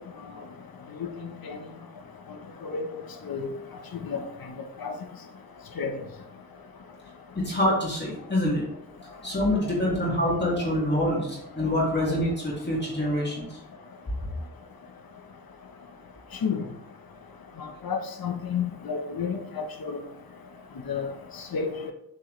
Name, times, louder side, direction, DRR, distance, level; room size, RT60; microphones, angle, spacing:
voice 1, 1.0-1.6 2.6-2.9 3.3-3.5 4.0-4.2 4.8-4.9 5.8-5.9 16.4-16.6 17.6-20.0 20.9-21.1 21.5-21.9, left 6 dB, 70° left, 5 dB, 1.0 m, -31 dB
voice 2, 7.4-8.6 9.2-13.6 14.2-14.3, left 1 dB, 30° left, -5 dB, 1.9 m, -26 dB
7.3 x 4.6 x 3.2 m, 0.78 s
wide cardioid pair, 115°, 37 cm